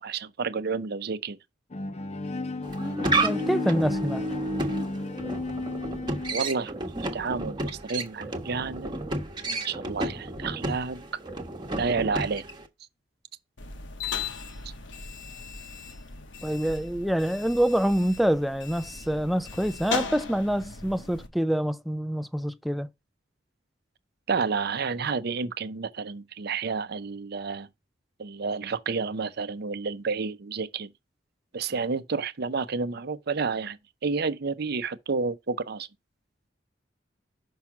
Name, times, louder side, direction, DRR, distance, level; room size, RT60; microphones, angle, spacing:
voice 1, 0.0-1.4 6.3-6.8 7.1-8.9 9.5-11.0 11.8-12.5 24.3-27.7 28.2-30.9 31.5-35.9, right 4 dB, 60° right, 0.6 m, -30 dB
Bowed string instrument, 1.7-6.6, left 2 dB, 35° left, 0.6 m, -33 dB
sound 1, 2.6-12.7, right 2 dB, 25° right, 1.1 m, -31 dB
voice 2, 3.2-4.2 16.4-22.9, equal, ahead, 0.3 m, -26 dB
sound 2, 13.6-21.3, left 5 dB, 75° left, 1.1 m, -37 dB
5.9 x 5.5 x 5.9 m
head